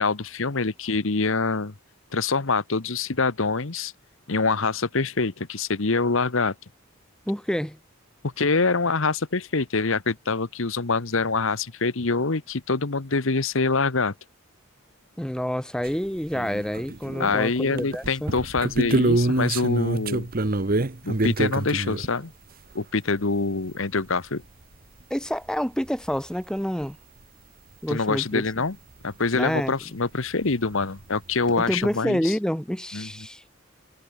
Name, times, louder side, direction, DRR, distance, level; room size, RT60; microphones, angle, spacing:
voice 1, 0.0-1.7 2.1-3.9 4.3-6.5 8.2-14.1 17.2-20.3 21.0-22.3 22.7-24.4 27.9-28.8 29.0-32.4 32.9-33.1, left 4 dB, 65° left, 1.2 m, -25 dB
voice 2, 7.3-7.8 15.2-18.3 25.1-27.0 27.8-28.4 29.3-29.7 31.6-33.4, equal, 5° left, 1.2 m, -28 dB
sound 1, 15.8-15.9 16.3-17.4 17.8-22.1 24.7-24.8 25.0-25.1 26.1-26.2 26.8-26.9 30.5-30.6 30.8-31.2, right 2 dB, 40° right, 1.1 m, -25 dB
head